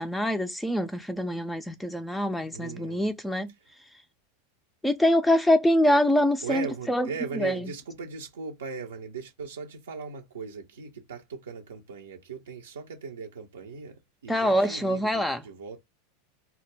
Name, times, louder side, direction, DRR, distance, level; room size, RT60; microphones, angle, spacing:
voice 1, 0.0-3.5 4.8-7.1 7.4-7.6 14.3-15.4, left 1 dB, 5° left, 0.3 m, -24 dB
voice 2, 2.5-3.1 3.5-3.7 6.4-15.8, right 5 dB, 80° right, 0.5 m, -38 dB
2.2 x 2.0 x 3.1 m
hypercardioid pair, 95°, 0 cm